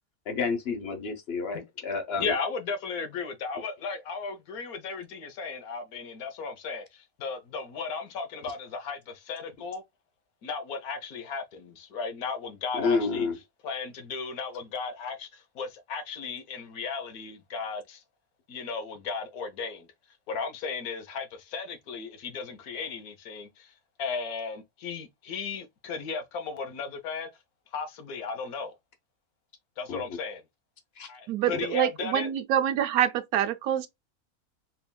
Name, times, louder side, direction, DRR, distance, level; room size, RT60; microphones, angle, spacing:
voice 1, 0.3-2.3 12.7-13.4 29.9-30.2 31.0-31.1 31.5-31.6, left 4 dB, 45° left, 1.2 m, -30 dB
voice 2, 2.2-9.8 10.4-13.3 13.6-18.0 18.5-19.9 20.3-27.3 27.7-28.8 29.8-30.4 31.1-32.3, left 5 dB, 85° left, 1.4 m, -35 dB
voice 3, 31.3-33.9, right 10 dB, 85° right, 1.1 m, -26 dB
4.4 x 3.4 x 2.3 m
omnidirectional pair, 1.5 m